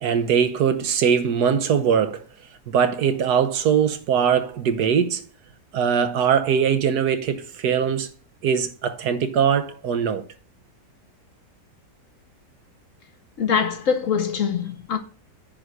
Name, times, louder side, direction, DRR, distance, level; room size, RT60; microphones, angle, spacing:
voice 1, 0.0-2.2 2.7-5.2 5.7-8.1 8.4-10.2, right 7 dB, 70° right, 1.4 m, -21 dB
voice 2, 13.4-15.0, left 7 dB, 55° left, 1.1 m, -23 dB
10.0 x 3.8 x 6.4 m
omnidirectional pair, 1.8 m